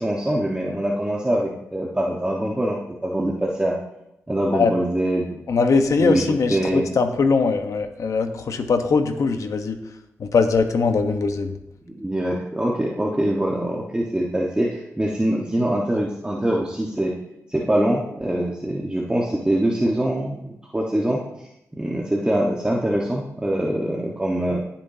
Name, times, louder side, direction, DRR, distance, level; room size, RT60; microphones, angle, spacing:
voice 1, 0.0-3.8 4.3-5.4 6.0-6.8 11.9-17.2 17.5-21.2 21.7-24.6, right 1 dB, 15° right, -3 dB, 1.5 m, -23 dB
voice 2, 5.5-9.8 10.2-11.6, left 4 dB, 75° left, 7 dB, 1.1 m, -21 dB
18.0 x 7.3 x 2.8 m, 0.83 s
cardioid pair, 60°, 5 cm